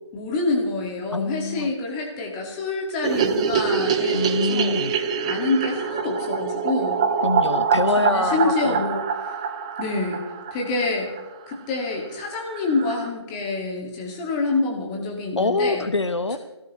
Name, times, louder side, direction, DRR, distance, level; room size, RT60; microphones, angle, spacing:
voice 1, 0.1-4.8 5.2-7.0 8.0-9.3 9.8-11.1 11.5-15.9, left 3 dB, 15° left, 0 dB, 2.1 m, -27 dB
voice 2, 1.1-1.7 4.1-4.9 7.2-8.8 15.4-16.4, left 3 dB, 75° left, 11 dB, 1.1 m, -25 dB
sound 1, 3.0-11.3 11.5-11.6 11.9-12.0 12.2-12.3 12.5-13.1, right 6 dB, 10° right, 0.6 m, -25 dB
23.5 x 16.5 x 3.2 m, 1.1 s
figure-of-eight pair, 155°, 15 cm